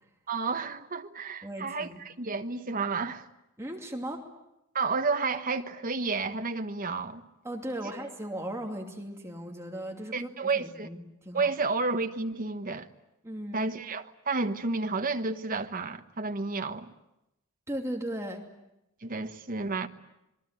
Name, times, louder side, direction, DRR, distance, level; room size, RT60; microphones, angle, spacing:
voice 1, 0.3-3.3 4.7-7.2 10.1-10.9 11.3-12.9 13.5-16.9 19.0-19.9, right 4 dB, 40° right, 1.2 m, -31 dB
voice 2, 1.4-2.0 3.6-4.3 7.4-11.5 13.2-13.6 17.7-18.4, right 1 dB, 15° right, 2.7 m, -37 dB
27.0 x 22.0 x 9.1 m
head